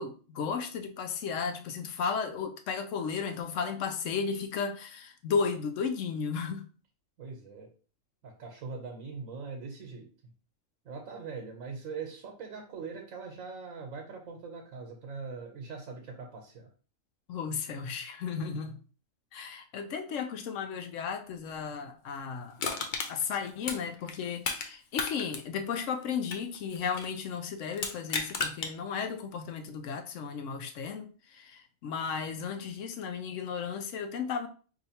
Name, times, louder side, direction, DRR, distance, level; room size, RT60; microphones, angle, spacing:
voice 1, 0.0-6.7 17.3-18.8 19.3-22.6 23.1-34.5, left 6 dB, 75° left, 0.9 m, -34 dB
voice 2, 7.2-7.7 8.2-10.1 10.8-16.7 18.4-18.6, right 4 dB, 85° right, 1.1 m, -42 dB
Crushing, 22.6-24.7 24.9-27.2 27.7-28.7 29.2-29.3, left 4 dB, 55° left, 0.5 m, -34 dB
4.7 x 2.6 x 2.8 m
omnidirectional pair, 1.4 m